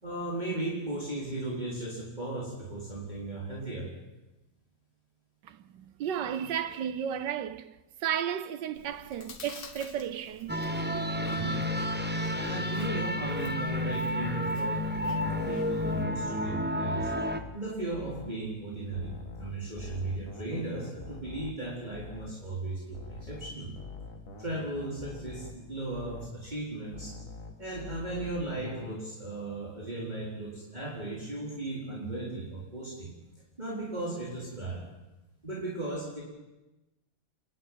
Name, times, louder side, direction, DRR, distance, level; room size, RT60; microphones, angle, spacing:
voice 1, 0.0-3.9 11.3-11.6 12.3-17.1 17.5-23.8 24.4-27.1 27.6-33.1 33.6-34.8 35.4-36.2, right 2 dB, 25° right, 4.2 m, -36 dB
voice 2, 5.4-10.6, right 9 dB, 90° right, 1.6 m, -34 dB
Chewing mastication, 8.7-16.0, left 5 dB, 90° left, 2.1 m, -50 dB
sound 1, 10.5-17.4, left 1 dB, 10° right, 0.9 m, -31 dB
sound 2, 14.9-18.4 18.9-22.5 22.9-26.4 26.9-29.0, left 3 dB, 50° left, 2.5 m, -45 dB
28.0 x 11.5 x 9.4 m
omnidirectional pair, 1.8 m